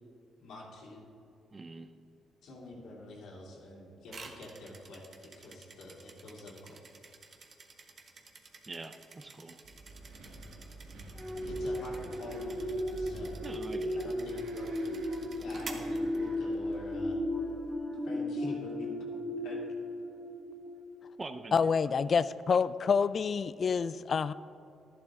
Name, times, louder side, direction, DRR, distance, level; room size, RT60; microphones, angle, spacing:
voice 1, 0.4-1.1 2.4-6.8 11.4-13.4 13.9-14.9 15.3-17.2 17.9-18.9 19.4-19.6, left 2 dB, 75° left, -4 dB, 2.8 m, -47 dB
voice 2, 1.5-1.9 8.7-9.6 13.4-14.1 21.2-22.1, right 3 dB, 25° right, 8 dB, 0.7 m, -44 dB
sound 1, 4.1-16.7, right 4 dB, 50° right, 1.2 m, -51 dB
Wind, 9.6-17.8, right 2 dB, 80° right, 1.7 m, -49 dB
sound 2, 11.2-21.0 21.5-21.7, left 1 dB, ahead, 1.7 m, -35 dB
voice 3, 21.5-24.3, left 6 dB, 45° left, 16 dB, 0.3 m, -27 dB
12.0 x 11.0 x 3.7 m, 2.7 s
cardioid pair, 90°, 0 cm